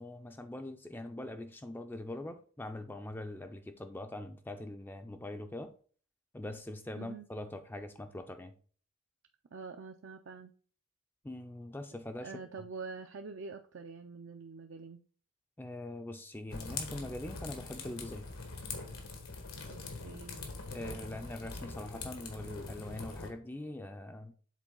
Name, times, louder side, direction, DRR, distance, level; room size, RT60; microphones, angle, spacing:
voice 1, 0.0-5.7 6.3-8.5 11.2-12.3 15.6-18.3 20.7-24.3, left 1 dB, 10° left, 0.4 m, -42 dB
voice 2, 7.0-7.3 9.5-10.5 12.2-15.0 19.6-20.4, right 4 dB, 60° right, 0.4 m, -46 dB
sound 1, 16.5-23.3, left 3 dB, 85° left, 1.5 m, -43 dB
7.4 x 3.9 x 3.8 m
head